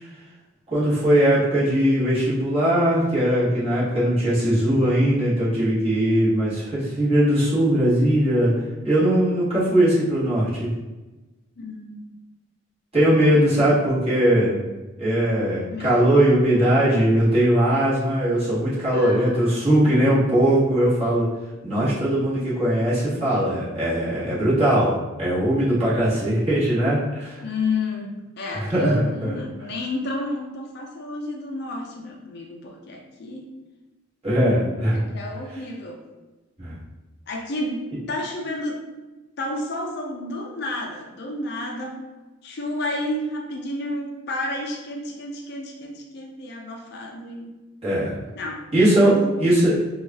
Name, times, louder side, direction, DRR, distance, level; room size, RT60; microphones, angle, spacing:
voice 1, 0.7-8.5 8.8-10.7 12.9-14.6 15.0-21.3 21.6-27.4 28.5-29.3 34.2-35.0 36.6-36.7 47.8-48.2 48.7-49.1 49.4-49.8, right 1 dB, 30° right, -9 dB, 1.4 m, -20 dB
voice 2, 11.6-12.0 15.7-16.1 18.9-19.5 27.4-33.5 34.9-36.0 37.3-38.8 39.4-42.0 42.4-47.5 48.3-49.4, left 2 dB, 50° left, 1 dB, 0.4 m, -31 dB
4.5 x 2.3 x 2.8 m, 1.1 s
head